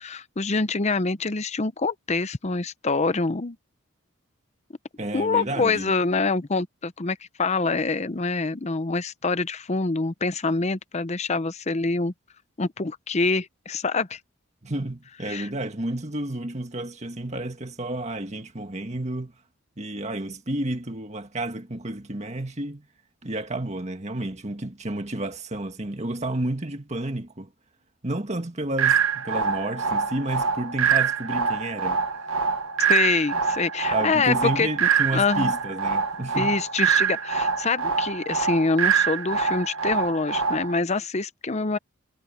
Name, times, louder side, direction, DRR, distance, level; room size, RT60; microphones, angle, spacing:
voice 1, 0.0-3.6 5.1-12.1 12.6-14.2 15.3-15.5 32.9-35.5 36.3-41.8, left 3 dB, 30° left, 0.7 m, -25 dB
voice 2, 5.0-6.0 14.6-19.3 19.8-22.9 23.2-27.5 28.0-32.0 33.9-36.5, right 1 dB, 35° right, 1.9 m, -31 dB
sound 1, 28.8-40.8, right 6 dB, 80° right, 1.4 m, -25 dB
head